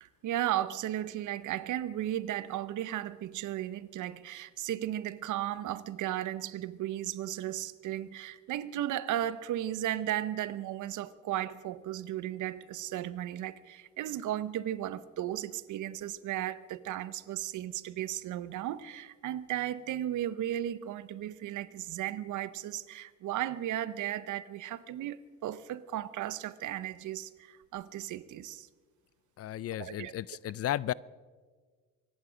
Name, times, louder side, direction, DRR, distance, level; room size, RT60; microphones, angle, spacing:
voice 1, 0.0-28.7 29.8-30.1, right 12 dB, 75° right, 0.8 m, -35 dB
voice 2, 29.4-30.9, left 12 dB, 50° left, 0.4 m, -34 dB
24.5 x 11.0 x 5.0 m
cardioid pair, 90°, 30 cm